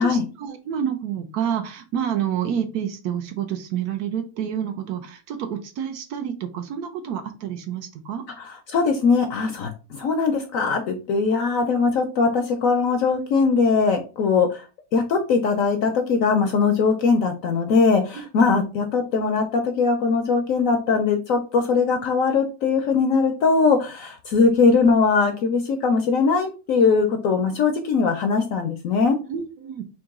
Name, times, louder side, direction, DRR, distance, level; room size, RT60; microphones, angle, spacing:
voice 1, 0.0-8.2 18.5-18.6 29.3-29.8, right 9 dB, 70° right, 7 dB, 1.1 m, -28 dB
voice 2, 8.4-14.7 14.9-29.2, left 4 dB, 65° left, 5 dB, 0.8 m, -21 dB
3.8 x 2.9 x 3.5 m, 0.33 s
omnidirectional pair, 1.8 m